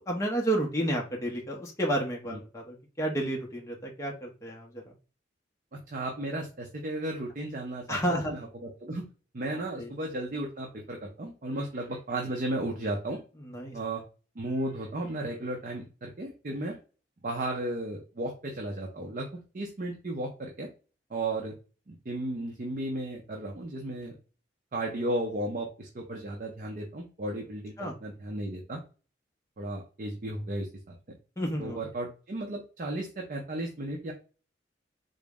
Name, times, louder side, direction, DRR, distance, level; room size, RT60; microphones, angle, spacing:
voice 1, 0.1-4.8 7.9-8.4 9.8-9.9 13.4-13.8 27.8-27.9 31.4-31.8, right 1 dB, 15° left, -1 dB, 0.5 m, -31 dB
voice 2, 5.7-9.0 9.3-13.2 13.7-14.0 14.4-16.8 17.2-19.3 19.5-20.7 21.1-21.5 21.9-24.1 24.7-28.8 29.6-31.2 31.6-34.1, right 1 dB, 45° right, 1 dB, 0.5 m, -34 dB
3.8 x 2.0 x 3.4 m, 0.35 s
head